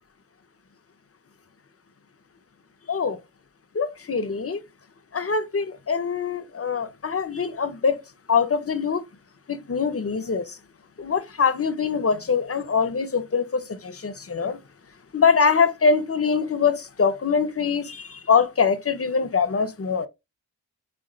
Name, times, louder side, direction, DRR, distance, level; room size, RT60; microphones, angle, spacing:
voice 1, 2.9-3.2 3.7-4.6 5.1-8.0 8.3-9.0 9.5-10.6 11.0-14.6 15.1-20.1, left 5 dB, 30° left, 0.9 m, -23 dB
3.9 x 3.5 x 2.4 m
cardioid pair, 40°, 44 cm